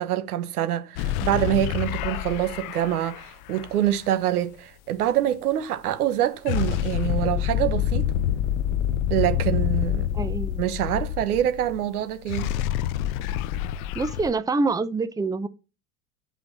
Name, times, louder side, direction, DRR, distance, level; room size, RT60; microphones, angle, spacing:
voice 1, 0.0-8.1 9.1-10.1 10.6-12.5, right 11 dB, 85° right, 1.2 m, -25 dB
sound 1, 1.0-3.9 6.5-11.8 12.1-14.3, left 11 dB, 70° left, 0.7 m, -27 dB
voice 2, 10.1-10.6 13.9-15.5, right 3 dB, 10° right, 0.7 m, -26 dB
6.7 x 5.7 x 4.1 m
hypercardioid pair, 80°, 44 cm